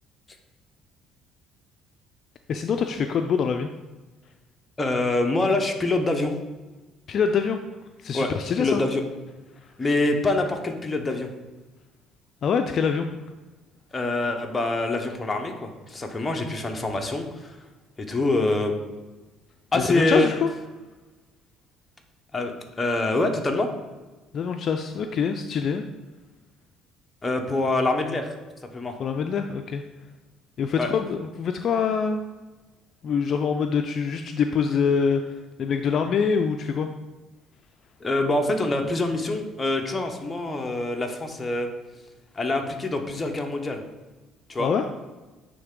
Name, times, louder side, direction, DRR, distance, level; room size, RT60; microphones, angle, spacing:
voice 1, 2.5-3.7 7.1-7.6 8.0-8.8 12.4-13.1 19.7-20.5 24.3-25.8 29.0-29.8 30.6-32.2 33.0-36.9 44.6-44.9, left 6 dB, 45° left, 6 dB, 0.3 m, -25 dB
voice 2, 4.8-6.3 8.1-8.3 8.6-9.0 9.8-11.3 13.9-17.6 18.0-18.7 19.7-20.3 22.3-23.7 27.2-28.3 28.7-29.0 30.8-30.9 38.0-41.7 42.3-43.8 44.5-44.7, left 2 dB, 15° left, 3 dB, 0.7 m, -25 dB
9.4 x 3.2 x 3.6 m, 1.2 s
cardioid pair, 130°, 0 cm